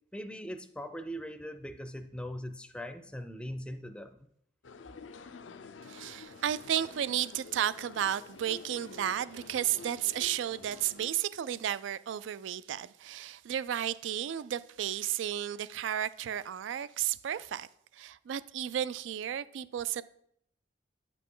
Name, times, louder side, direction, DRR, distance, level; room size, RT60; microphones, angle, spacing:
voice 1, 0.1-4.2, equal, 5° left, 0.5 m, -40 dB
sound 1, 4.6-11.1, left 4 dB, 80° left, 0.5 m, -49 dB
voice 2, 5.9-17.7 17.9-20.0, right 10 dB, 75° right, 0.3 m, -33 dB
9.3 x 6.0 x 3.8 m
head